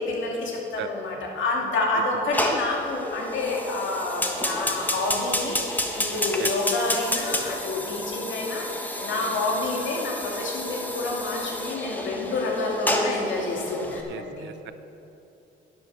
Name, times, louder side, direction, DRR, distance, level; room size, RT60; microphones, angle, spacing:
voice 1, 0.0-8.7 9.0-14.4, left 2 dB, 75° left, -1 dB, 2.4 m, -28 dB
Fire, 2.3-14.0, left 1 dB, 10° left, 1.2 m, -30 dB
voice 2, 14.1-14.7, right 11 dB, 70° right, 12 dB, 0.6 m, -36 dB
11.0 x 8.9 x 6.4 m, 2.8 s
cardioid pair, 90°, 20 cm